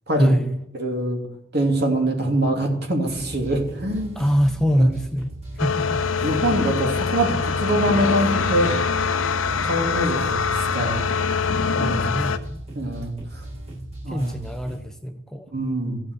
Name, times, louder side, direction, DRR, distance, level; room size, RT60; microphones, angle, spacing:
voice 1, 0.2-0.7 4.2-5.3 5.6-6.0 11.8-12.6 14.1-15.5, equal, 5° left, 6 dB, 0.7 m, -23 dB
voice 2, 0.7-1.2 1.5-4.1 4.8-4.9 6.2-8.7 9.6-11.1 11.8-12.0 12.7-13.4 14.0-14.3 15.5-16.0, right 1 dB, 55° right, 2 dB, 2.9 m, -24 dB
sound 1, 3.0-14.8, right 1 dB, 35° right, 7.6 m, -38 dB
sound 2, 5.6-12.4, left 5 dB, 85° left, 0.8 m, -24 dB
14.0 x 7.7 x 8.1 m, 0.77 s
head